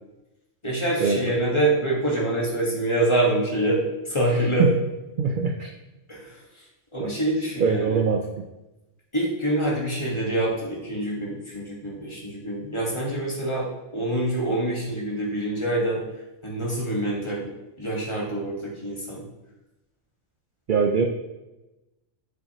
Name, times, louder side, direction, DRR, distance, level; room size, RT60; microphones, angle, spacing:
voice 1, 0.6-4.7 6.1-6.3 6.9-8.0 9.1-13.7 13.9-16.0 16.4-17.5 17.8-19.2, right 1 dB, 25° left, -4 dB, 1.6 m, -25 dB
voice 2, 5.2-5.7 7.0-7.1 7.6-8.3 20.7-21.1, right 5 dB, 60° right, 3 dB, 0.6 m, -22 dB
7.4 x 6.0 x 3.0 m, 0.98 s
omnidirectional pair, 1.3 m